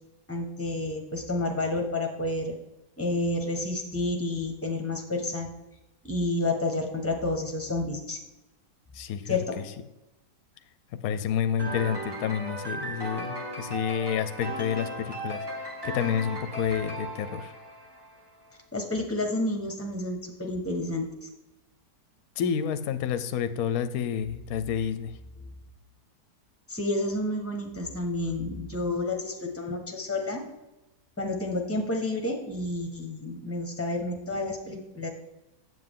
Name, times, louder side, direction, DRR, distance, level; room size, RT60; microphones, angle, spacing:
voice 1, 0.3-2.5 3.0-5.5 6.0-8.2 9.3-9.4 18.7-21.0 26.7-30.4 31.2-35.1, left 2 dB, 10° left, 3 dB, 1.1 m, -30 dB
voice 2, 8.9-9.6 11.0-17.5 22.4-25.1, left 8 dB, 65° left, 11 dB, 1.0 m, -29 dB
sound 1, 11.6-18.2, right 1 dB, 15° right, 1.4 m, -36 dB
7.8 x 7.8 x 3.7 m, 0.96 s
omnidirectional pair, 1.8 m